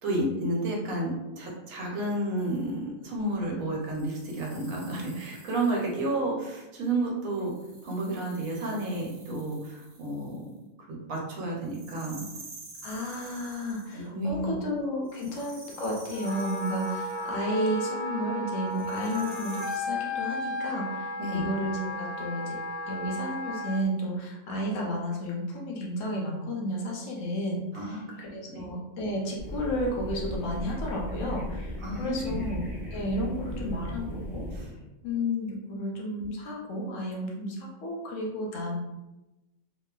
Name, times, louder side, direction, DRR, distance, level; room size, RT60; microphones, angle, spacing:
voice 1, 0.0-7.5 7.8-10.5 10.9-12.2 13.9-14.5 21.2-21.5 27.7-28.2 28.5-28.6 31.8-32.5 34.5-34.7, right 1 dB, 85° right, -2 dB, 1.1 m, -31 dB
sound 1, 2.4-2.7 3.9-6.1 7.3-10.5 11.6-14.1 15.0-17.4 18.7-19.8, right 3 dB, 55° right, 0.7 m, -49 dB
voice 2, 12.8-22.6 22.9-32.6 32.9-34.5 35.0-38.8, equal, 75° left, -1 dB, 1.0 m, -32 dB
Wind instrument woodwind instrument, 16.1-23.8, left 1 dB, 60° left, 0.4 m, -34 dB
sound 2, 29.4-34.6, equal, 30° left, 0.7 m, -36 dB
2.9 x 2.1 x 2.3 m, 0.99 s
omnidirectional pair, 1.4 m